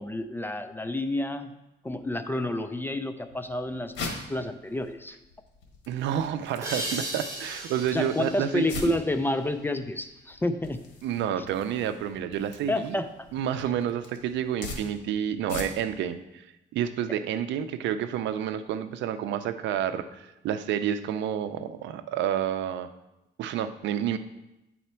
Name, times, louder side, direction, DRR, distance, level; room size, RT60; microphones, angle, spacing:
voice 1, 0.0-1.5 1.8-5.2 7.9-10.8 11.4-11.5 12.7-13.1 17.1-17.2, left 1 dB, 10° left, 9 dB, 0.4 m, -29 dB
sound 1, 3.3-16.1, left 3 dB, 80° left, 1.4 m, -43 dB
voice 2, 5.9-8.9 11.0-12.9 13.3-16.4 16.7-22.9 23.4-24.2, right 9 dB, 75° right, 11 dB, 0.5 m, -29 dB
sound 2, 6.6-10.0, right 1 dB, 15° right, 2.4 m, -37 dB
9.2 x 4.2 x 4.4 m, 0.92 s
cardioid pair, 120°, 19 cm